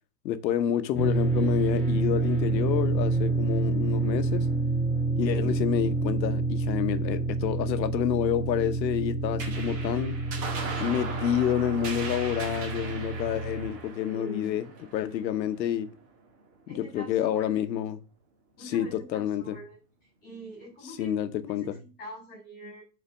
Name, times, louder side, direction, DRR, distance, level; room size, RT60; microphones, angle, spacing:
voice 1, 0.2-4.5 5.2-10.1 10.8-15.9 16.7-18.0 18.6-19.6 20.8-21.8, left 10 dB, 90° left, 1.0 m, -29 dB
sound 1, 1.0-13.7, right 3 dB, ahead, 1.1 m, -28 dB
sound 2, 9.4-16.2, right 4 dB, 25° right, 1.7 m, -39 dB
voice 2, 14.0-14.5 16.7-17.6 18.6-19.8 20.2-22.8, equal, 20° left, 2.9 m, -44 dB
6.8 x 4.4 x 6.1 m
supercardioid pair, 160°, 50 cm